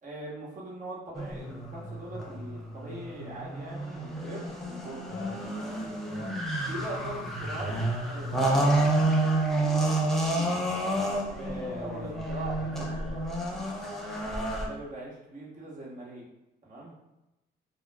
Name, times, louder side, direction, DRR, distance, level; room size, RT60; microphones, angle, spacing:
voice 1, 0.0-5.0 6.7-7.7 8.0-10.6 11.4-13.3 14.7-16.3 16.6-16.9, right 2 dB, 40° right, -5 dB, 1.0 m, -41 dB
sound 1, 1.1-14.7, right 1 dB, ahead, 0.4 m, -30 dB
voice 2, 5.1-5.4 6.1-6.4 11.4-13.4 14.3-14.6, left 2 dB, 65° left, -6 dB, 0.6 m, -44 dB
2.2 x 2.0 x 3.3 m, 0.93 s
cardioid pair, 90°, 20 cm